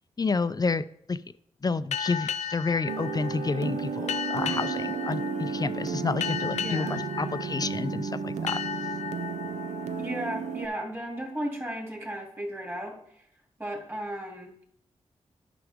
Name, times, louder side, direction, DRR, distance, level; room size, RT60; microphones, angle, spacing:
voice 1, 0.2-1.2 1.6-8.6, left 4 dB, 35° left, 14 dB, 0.4 m, -30 dB
sound 1, 1.9-11.2, left 7 dB, 90° left, 0.4 m, -36 dB
sound 2, 2.9-10.7, right 6 dB, 85° right, 0.5 m, -33 dB
voice 2, 6.6-7.5 10.0-13.3 13.6-14.5, right 1 dB, 20° right, 0 dB, 2.8 m, -35 dB
9.6 x 5.9 x 3.6 m, 0.69 s
cardioid pair, 60°, 12 cm